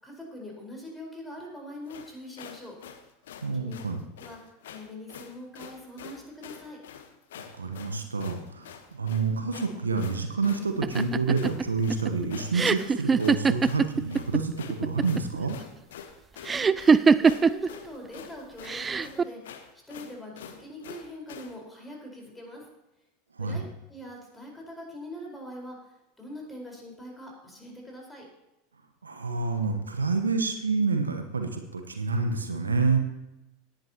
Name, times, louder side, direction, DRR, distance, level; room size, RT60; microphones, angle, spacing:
voice 1, 0.0-2.8 3.5-3.8 4.2-4.4 4.6-6.8 16.3-19.6 19.9-22.7 23.4-28.2, left 1 dB, 10° left, -1 dB, 4.6 m, -43 dB
sound 1, 1.9-21.6, left 8 dB, 65° left, 1.1 m, -46 dB
voice 2, 3.4-4.0 7.6-15.6 23.3-23.6 29.0-33.0, right 4 dB, 80° right, 6 dB, 1.1 m, -28 dB
sound 2, 10.8-14.4 14.7-15.4 16.5-17.7 18.7-19.2, right 5 dB, 20° right, 0.4 m, -22 dB
18.0 x 10.5 x 3.0 m, 0.94 s
figure-of-eight pair, 80°, 0 cm